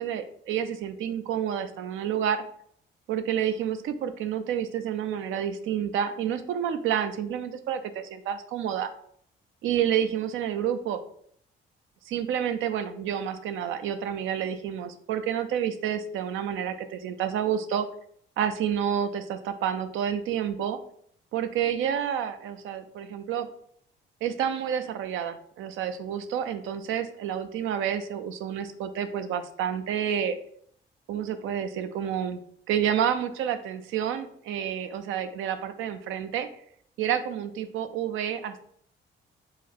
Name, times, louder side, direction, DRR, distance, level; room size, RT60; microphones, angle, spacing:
voice 1, 0.0-2.4 3.1-8.9 9.6-11.0 12.1-17.9 18.4-20.8 21.3-23.5 24.2-30.4 31.1-32.4 32.7-36.5 37.0-38.6, right 9 dB, 85° right, 10 dB, 0.5 m, -29 dB
4.8 x 2.1 x 4.2 m, 0.63 s
cardioid pair, 90°, 20 cm